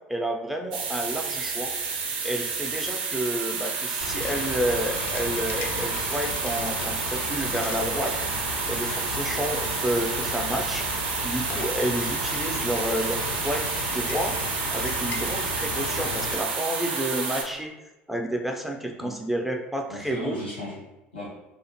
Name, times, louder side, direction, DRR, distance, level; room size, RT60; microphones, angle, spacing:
voice 1, 0.1-1.7 2.2-10.9 11.2-17.7 18.1-20.4, right 1 dB, 5° right, 2 dB, 0.3 m, -30 dB
sound 1, 0.7-17.4, right 5 dB, 70° right, 0.4 m, -30 dB
Rain, 4.0-16.3, left 3 dB, 70° left, 0.4 m, -35 dB
voice 2, 19.9-21.3, left 1 dB, 90° left, -6 dB, 0.9 m, -36 dB
2.4 x 2.4 x 2.6 m, 1.0 s
figure-of-eight pair, 65°, 6 cm